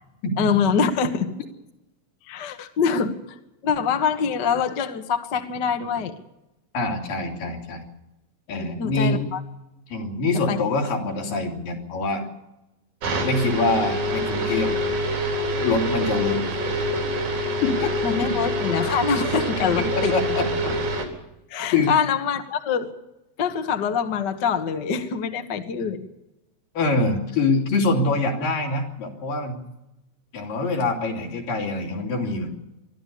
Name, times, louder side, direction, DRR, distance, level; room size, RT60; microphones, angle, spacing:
voice 1, 0.4-1.3 2.2-3.1 3.6-6.1 8.8-9.4 10.5-10.6 18.0-20.2 21.5-22.9 23.4-26.1, left 6 dB, 45° left, 6 dB, 1.4 m, -24 dB
voice 2, 6.7-7.9 8.5-9.3 9.9-12.3 13.2-14.7 15.6-16.4 17.6-17.9 18.2-18.3 19.6-20.4 21.7-21.9 26.7-29.7 30.3-32.6, left 3 dB, 75° left, 1 dB, 4.7 m, -24 dB
sound 1, 13.0-21.0, equal, 80° right, 5.6 m, -26 dB
24.0 x 13.5 x 8.5 m, 0.93 s
omnidirectional pair, 4.0 m